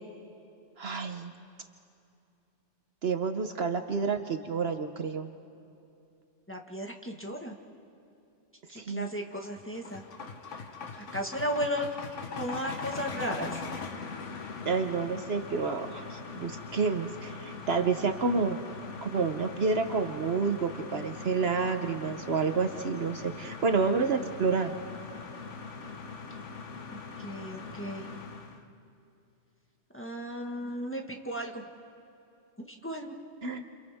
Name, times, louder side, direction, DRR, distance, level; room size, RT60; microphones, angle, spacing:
voice 1, 0.8-1.3 3.0-5.3 8.7-9.1 14.6-18.6 19.0-24.7 33.4-33.6, right 5 dB, 60° right, 7 dB, 1.1 m, -29 dB
voice 2, 6.5-7.5 8.7-10.0 11.1-11.9 12.4-13.6 26.9-28.1 29.9-31.6 32.6-33.2, equal, 10° left, 1 dB, 1.4 m, -35 dB
sound 1, 9.2-28.6, left 4 dB, 75° left, 1.5 m, -41 dB
30.0 x 28.5 x 3.5 m, 2.7 s
omnidirectional pair, 1.3 m